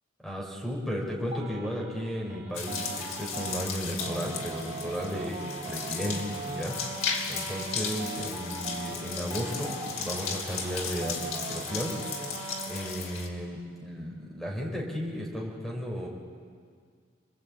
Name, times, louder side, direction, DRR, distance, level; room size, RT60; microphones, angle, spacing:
voice 1, 0.2-5.4 5.7-6.8 7.3-12.0 12.7-16.1, equal, ahead, -2 dB, 4.2 m, -34 dB
sound 1, 1.3-12.9, right 3 dB, 30° right, 3.0 m, -40 dB
sound 2, 2.5-13.3, left 5 dB, 70° left, 2.9 m, -36 dB
27.5 x 21.0 x 8.6 m, 2.1 s
head